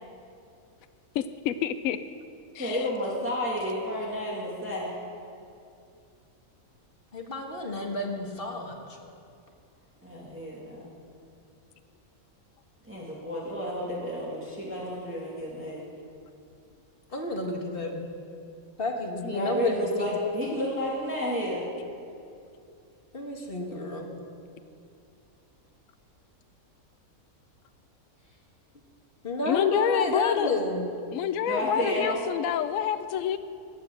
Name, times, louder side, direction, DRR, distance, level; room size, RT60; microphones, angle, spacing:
voice 1, 1.1-2.0 2.5-2.9 29.4-30.5 31.1-33.4, left 10 dB, 70° left, 11 dB, 0.9 m, -27 dB
voice 2, 2.6-4.9 10.0-10.9 12.9-15.8 19.2-21.7 31.5-32.2, equal, 10° right, -5 dB, 2.4 m, -31 dB
voice 3, 7.1-9.0 17.1-18.0 18.8-20.1 23.1-24.2 29.2-30.9, left 2 dB, 40° left, 1 dB, 1.7 m, -31 dB
16.5 x 9.7 x 7.2 m, 2.5 s
omnidirectional pair, 1.5 m